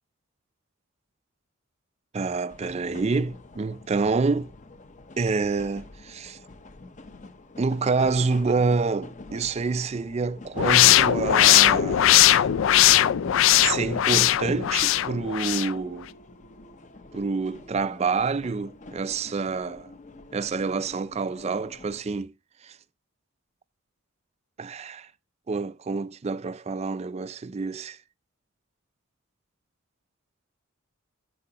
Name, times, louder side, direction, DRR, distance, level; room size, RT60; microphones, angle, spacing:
voice 1, 2.1-4.5 5.2-6.4 7.6-12.5 13.6-16.1 17.1-19.9 20.3-22.3 22.6-22.8 24.6-25.1 25.5-28.0, right 4 dB, 30° right, 0.4 m, -27 dB
sound 1, 2.5-22.0, left 2 dB, 35° left, 0.7 m, -45 dB
sound 2, 10.6-15.7, left 12 dB, 65° left, 0.3 m, -19 dB
9.7 x 7.7 x 2.8 m
head